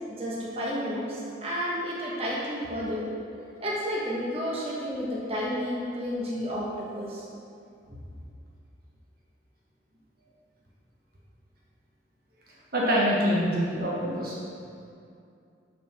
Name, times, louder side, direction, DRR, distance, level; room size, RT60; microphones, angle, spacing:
voice 1, 0.1-3.1 3.6-7.3, equal, 30° right, -6 dB, 1.3 m, -31 dB
voice 2, 12.7-14.4, equal, 50° right, -5 dB, 1.2 m, -25 dB
6.6 x 4.8 x 5.9 m, 2.5 s
head